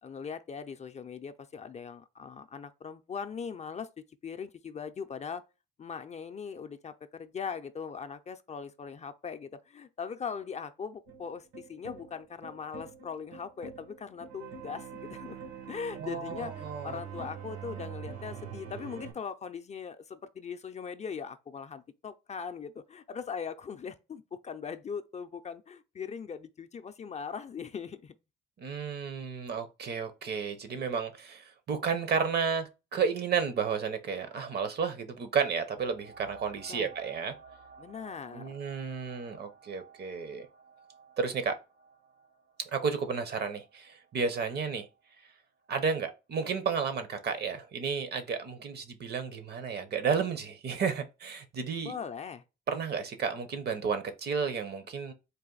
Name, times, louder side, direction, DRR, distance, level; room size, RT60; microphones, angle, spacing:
voice 1, 0.0-5.4 5.8-15.4 15.7-28.1 36.7-36.9 37.8-38.5 51.8-52.4, left 6 dB, 35° left, 0.4 m, -40 dB
sound 1, 11.1-19.1, right 7 dB, 85° right, 1.7 m, -44 dB
voice 2, 16.0-17.3 28.6-37.3 38.3-40.5 41.2-41.6 42.7-44.9 45.7-52.0 52.7-55.1, right 6 dB, 55° right, 0.8 m, -32 dB
sound 2, 35.8-45.0 45.7-45.8, right 5 dB, 70° right, 1.2 m, -54 dB
4.0 x 2.5 x 3.8 m
cardioid pair, 90°, 20 cm